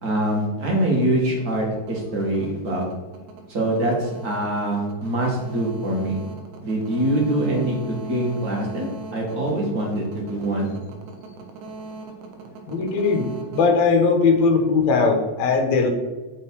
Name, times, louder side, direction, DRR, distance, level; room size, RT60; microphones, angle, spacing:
voice 1, 0.0-2.9 3.5-6.2 6.6-7.7 8.1-10.7, right 1 dB, 30° right, -2 dB, 2.2 m, -24 dB
sound 1, 0.8-14.7, right 3 dB, 70° right, 2.4 m, -40 dB
voice 2, 12.7-15.9, left 4 dB, 60° left, 2 dB, 2.4 m, -19 dB
9.4 x 5.5 x 4.7 m, 1.2 s
omnidirectional pair, 3.7 m